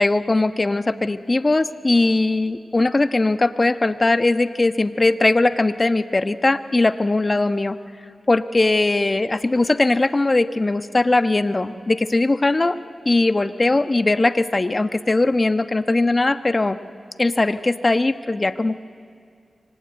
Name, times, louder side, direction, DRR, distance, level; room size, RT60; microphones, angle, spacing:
voice 1, 0.0-7.8 8.3-12.8 13.0-16.8 17.2-18.8, left 2 dB, 40° left, 10 dB, 1.1 m, -20 dB
25.5 x 24.5 x 9.6 m, 2.2 s
cardioid pair, 40°, 0 cm